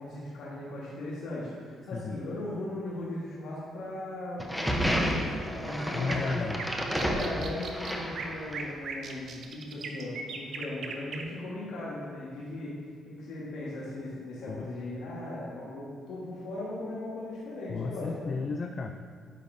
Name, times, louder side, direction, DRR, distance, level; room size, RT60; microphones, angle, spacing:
voice 1, 0.0-6.4 6.9-12.8 13.0-18.4, left 1 dB, 85° left, -7 dB, 1.4 m, -38 dB
sound 1, 4.4-8.7, equal, ahead, 0.8 m, -31 dB
sound 2, 5.7-11.2, right 5 dB, 65° right, 0.7 m, -39 dB
voice 2, 5.9-6.6 14.5-14.7 17.7-18.9, left 4 dB, 45° left, 5 dB, 0.3 m, -33 dB
9.3 x 5.1 x 2.7 m, 2.1 s
cardioid pair, 90°, 0 cm